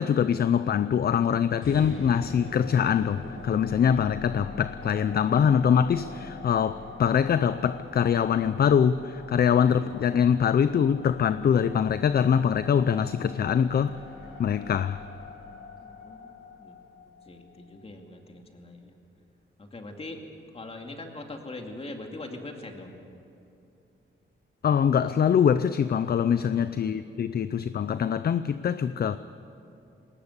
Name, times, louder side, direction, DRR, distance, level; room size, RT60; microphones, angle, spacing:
voice 1, 0.0-13.9 14.4-15.0 24.6-29.2, left 8 dB, 50° left, 13 dB, 0.5 m, -23 dB
sound 1, 1.6-17.8, left 3 dB, 85° left, 6.3 m, -43 dB
voice 2, 15.8-16.3 16.6-16.8 17.2-18.9 19.6-20.2 20.5-22.9 26.2-27.2, left 2 dB, 30° left, 3 dB, 2.5 m, -42 dB
21.0 x 19.0 x 8.3 m, 2.8 s
wide cardioid pair, 120°, 21 cm